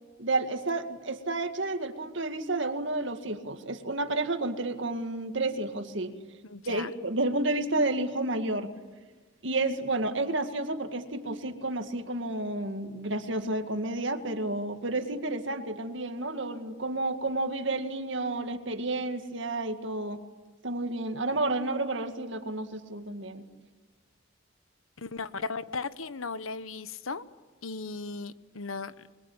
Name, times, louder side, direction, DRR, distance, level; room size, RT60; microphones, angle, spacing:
voice 1, 0.2-6.2 6.7-8.7 9.4-20.2 20.6-23.4, right 2 dB, 60° right, 7 dB, 2.1 m, -31 dB
voice 2, 6.5-6.9 25.0-27.2 27.6-28.9, left 4 dB, 85° left, 14 dB, 1.1 m, -36 dB
30.0 x 22.0 x 8.9 m, 1.3 s
head